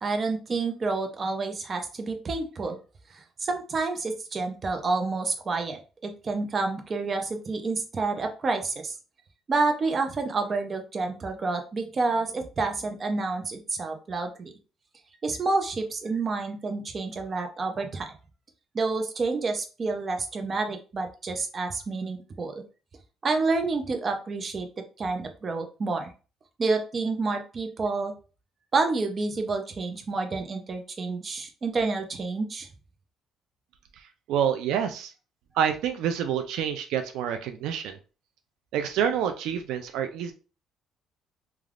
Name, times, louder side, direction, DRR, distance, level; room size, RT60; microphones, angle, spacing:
voice 1, 0.0-2.8 3.1-8.9 9.5-14.5 15.2-18.1 18.7-22.6 23.2-24.7 25.0-26.1 26.6-28.1 28.7-32.7, right 3 dB, 30° right, 5 dB, 0.5 m, -29 dB
voice 2, 34.3-35.1 35.6-38.0 38.7-40.3, right 8 dB, 80° right, 7 dB, 0.3 m, -27 dB
3.3 x 2.3 x 2.4 m, 0.34 s
cardioid pair, 130°, 0 cm